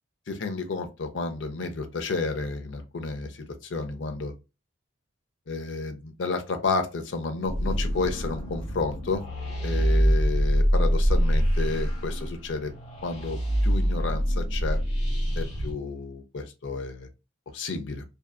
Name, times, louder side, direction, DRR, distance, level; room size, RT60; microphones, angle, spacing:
voice 1, 0.3-4.3 5.5-9.2 9.6-12.7 13.0-14.8 15.4-17.1 17.5-18.0, left 3 dB, 70° left, 0.6 m, -31 dB
sound 1, 7.5-15.7, equal, 35° left, 1.1 m, -25 dB
2.7 x 2.3 x 2.3 m
head